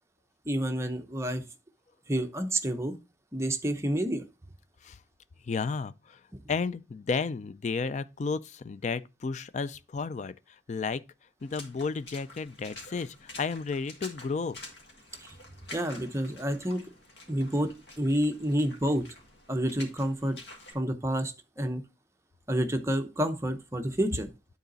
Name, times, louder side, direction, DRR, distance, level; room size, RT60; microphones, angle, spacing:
voice 1, 0.5-1.4 2.1-3.0 3.3-4.2 15.2-15.3 15.7-16.8 17.3-17.7 18.0-19.0 19.5-20.4 20.7-21.8 22.5-24.3, right 1 dB, 15° right, 0.7 m, -29 dB
voice 2, 5.4-6.2 6.5-11.0 11.4-14.6, left 4 dB, 40° left, 0.3 m, -33 dB
Water / Splash splatter, 11.4-20.7, left 2 dB, 65° left, 1.9 m, -48 dB
9.3 x 4.0 x 3.9 m
head